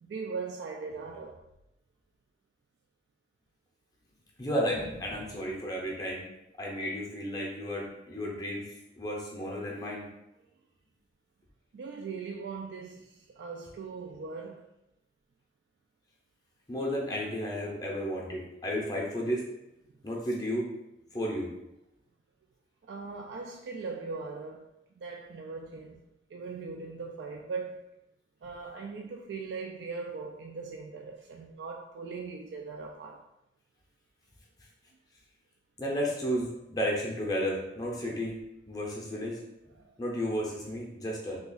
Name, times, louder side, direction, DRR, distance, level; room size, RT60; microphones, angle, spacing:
voice 1, 0.0-1.4 11.7-14.7 22.9-24.7 25.0-26.0 26.3-27.9 28.4-33.2 39.7-39.8, right 4 dB, 75° right, 1 dB, 0.3 m, -40 dB
voice 2, 4.4-6.2 6.6-8.7 9.0-10.0 16.7-19.4 20.0-20.7 21.1-21.5 35.8-38.4 38.7-39.4 40.0-41.4, equal, 20° left, -2 dB, 0.5 m, -32 dB
2.8 x 2.3 x 3.8 m, 0.88 s
head